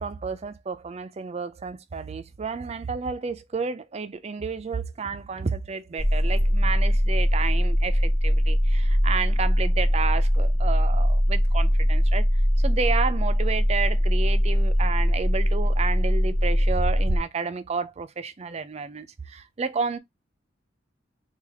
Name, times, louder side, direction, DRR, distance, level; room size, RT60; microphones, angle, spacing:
voice 1, 0.0-12.2 12.6-20.0, right 5 dB, 35° right, 0.4 m, -31 dB
sound 1, 6.0-17.2, equal, 5° left, 0.6 m, -21 dB
3.3 x 2.4 x 3.4 m
head